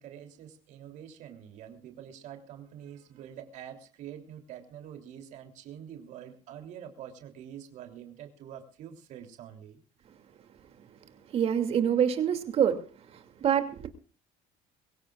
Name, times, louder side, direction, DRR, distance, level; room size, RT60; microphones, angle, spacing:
voice 1, 0.0-9.8, right 9 dB, 65° right, 4 dB, 3.2 m, -46 dB
voice 2, 11.3-12.8 13.1-13.9, right 8 dB, 45° right, 7 dB, 2.7 m, -26 dB
23.5 x 16.5 x 2.5 m, 0.39 s
cardioid pair, 125°, 14 cm